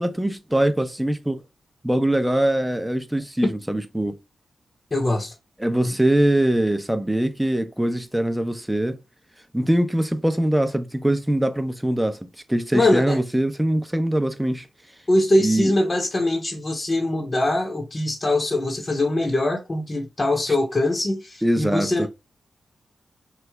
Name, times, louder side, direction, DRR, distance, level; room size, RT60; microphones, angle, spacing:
voice 1, 0.0-1.4 1.8-4.2 5.6-9.0 9.5-14.7 15.4-15.7 21.4-22.1, right 1 dB, 10° right, 0.5 m, -22 dB
voice 2, 4.9-5.3 5.8-5.9 12.7-13.2 15.1-22.1, left 1 dB, 40° left, 0.7 m, -22 dB
3.1 x 2.0 x 3.4 m
supercardioid pair, 45°, 0 cm